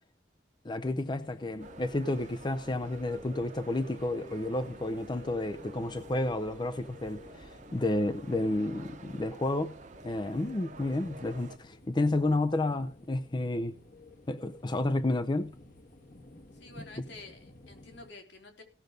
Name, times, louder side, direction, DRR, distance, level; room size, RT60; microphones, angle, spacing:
voice 1, 0.6-9.8 10.0-13.7 14.3-15.5, left 2 dB, 25° left, 0.5 m, -31 dB
sound 1, 0.8-18.1, left 2 dB, 50° left, 1.3 m, -53 dB
sound 2, 1.6-11.6, right 3 dB, 45° right, 1.1 m, -50 dB
voice 2, 16.5-18.6, left 2 dB, 80° left, 3.8 m, -50 dB
17.5 x 6.6 x 5.2 m
head